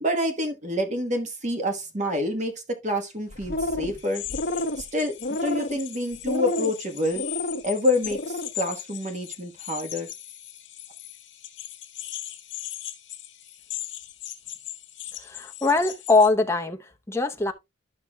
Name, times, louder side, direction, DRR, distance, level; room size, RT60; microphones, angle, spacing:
voice 1, 0.0-4.2 4.8-7.2 7.6-10.1, left 1 dB, 40° right, 1.3 m, -27 dB
sound 1, 3.3-4.0 4.3-4.8 5.2-5.8 6.2-6.7 7.2-7.6 8.0-8.5, left 1 dB, 55° left, 0.8 m, -29 dB
sound 2, 3.9-16.3, left 14 dB, 75° left, 1.5 m, -39 dB
voice 2, 15.2-17.5, left 3 dB, 15° left, 0.7 m, -22 dB
12.0 x 5.9 x 2.3 m
head